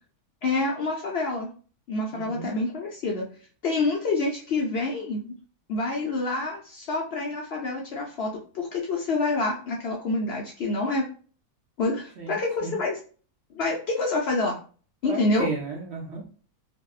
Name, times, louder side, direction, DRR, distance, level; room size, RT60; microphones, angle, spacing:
voice 1, 0.4-1.5 1.9-3.2 3.6-5.3 5.7-11.1 11.8-13.0 13.5-14.6 15.0-15.5, left 3 dB, 70° left, -1 dB, 0.6 m, -27 dB
voice 2, 2.1-2.5 12.2-12.7 15.0-16.4, right 4 dB, 60° right, 1 dB, 0.8 m, -34 dB
3.4 x 2.1 x 2.4 m, 0.41 s
omnidirectional pair, 1.6 m